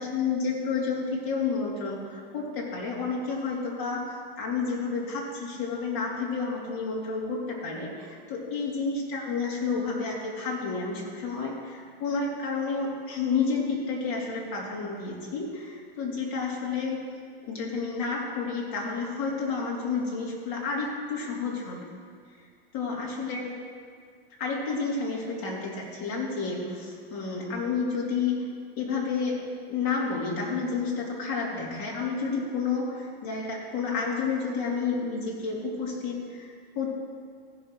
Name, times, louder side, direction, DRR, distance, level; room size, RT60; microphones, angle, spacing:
voice 1, 0.0-17.0 17.4-21.9 22.7-23.6 24.4-28.5 28.8-29.4 29.7-36.9, left 4 dB, 40° left, -3 dB, 2.7 m, -30 dB
15.0 x 6.0 x 4.7 m, 2.1 s
supercardioid pair, 150°, 31 cm